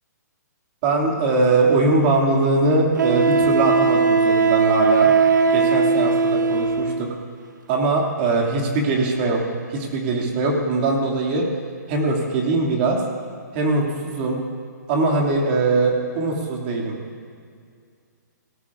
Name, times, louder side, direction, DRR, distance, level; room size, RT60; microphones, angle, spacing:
voice 1, 0.8-5.1 5.5-7.1 7.7-9.4 9.7-11.5 11.9-13.0 13.5-14.4 14.9-16.9, right 3 dB, 30° right, -1 dB, 2.1 m, -21 dB
Wind instrument woodwind instrument, 1.7-1.8 3.0-7.0, right 4 dB, 75° right, 0.8 m, -18 dB
18.0 x 16.5 x 2.4 m, 2.2 s
hypercardioid pair, 160°, 10 cm